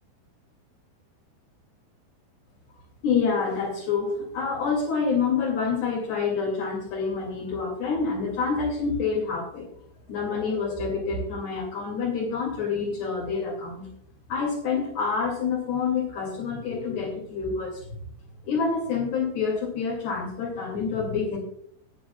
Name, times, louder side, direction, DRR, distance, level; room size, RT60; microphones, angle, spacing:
voice 1, 3.0-9.7 10.1-13.9 14.3-17.9 18.5-21.4, left 5 dB, 65° left, -4 dB, 4.7 m, -27 dB
19.5 x 9.5 x 2.4 m, 0.69 s
omnidirectional pair, 5.2 m